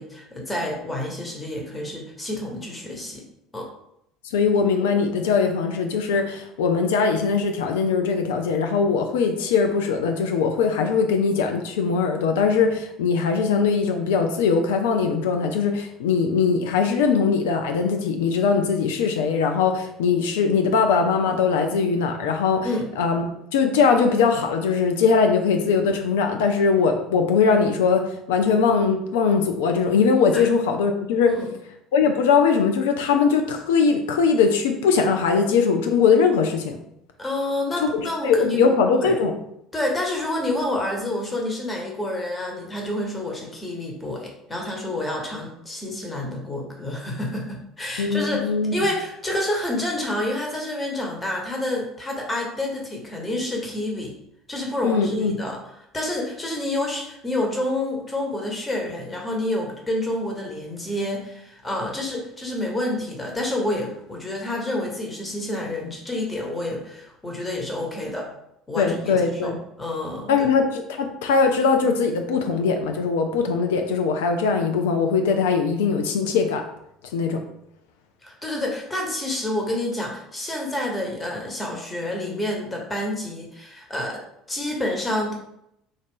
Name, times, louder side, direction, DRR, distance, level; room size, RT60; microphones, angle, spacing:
voice 1, 0.0-3.2 3.5-3.7 22.6-22.9 30.3-30.5 31.4-31.5 37.2-39.2 39.7-48.4 48.7-54.1 54.5-55.6 55.9-68.3 68.7-69.5 69.8-70.5 78.2-84.2 84.5-85.3, left 1 dB, 20° left, 0 dB, 1.2 m, -28 dB
voice 2, 4.2-22.7 23.0-23.2 23.5-31.3 31.9-36.8 37.8-39.3 48.0-48.7 54.8-55.4 68.8-69.6 70.3-76.6 77.1-77.4, left 5 dB, 75° left, 5 dB, 0.4 m, -21 dB
3.8 x 2.5 x 3.7 m, 0.79 s
hypercardioid pair, 65°, 0 cm